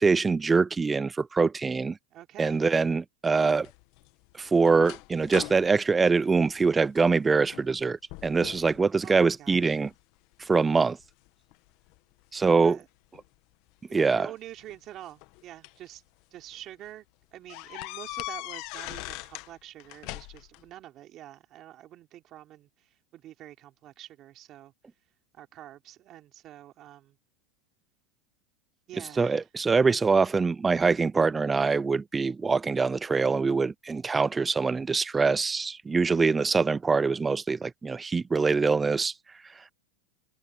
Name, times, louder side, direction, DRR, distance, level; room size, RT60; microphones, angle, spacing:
voice 1, 0.0-2.0 2.4-3.7 4.4-9.9 10.4-11.0 12.3-12.8 13.9-14.3 29.2-39.1, right 4 dB, 15° right, 0.4 m, -24 dB
voice 2, 2.1-2.6 9.0-9.8 12.6-12.9 13.9-16.0 16.3-17.0 17.3-24.7 25.3-27.2 28.9-29.4, right 13 dB, 40° right, 3.4 m, -46 dB
sound 1, 3.6-7.0 7.5-7.8 8.1-8.8 9.2-9.9 10.5-12.0 13.1-13.3 14.5-15.9 16.4-16.6 16.9-17.0 17.5-19.5 19.8-20.6, left 22 dB, 55° left, 1.3 m, -41 dB
supercardioid pair, 130°, 0 cm